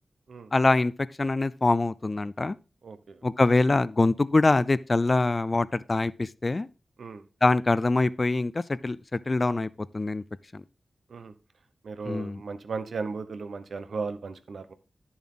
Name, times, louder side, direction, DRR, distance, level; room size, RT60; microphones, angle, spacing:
voice 1, 0.5-0.9 1.2-2.6 3.2-6.7 7.4-10.2 10.5-10.6 12.0-12.4, left 2 dB, 35° left, 0.4 m, -24 dB
voice 2, 2.8-3.2 7.0-7.2 11.1-11.3 11.8-14.7, right 4 dB, 85° right, 0.9 m, -36 dB
10.5 x 7.1 x 3.8 m
wide cardioid pair, 105°, 0 cm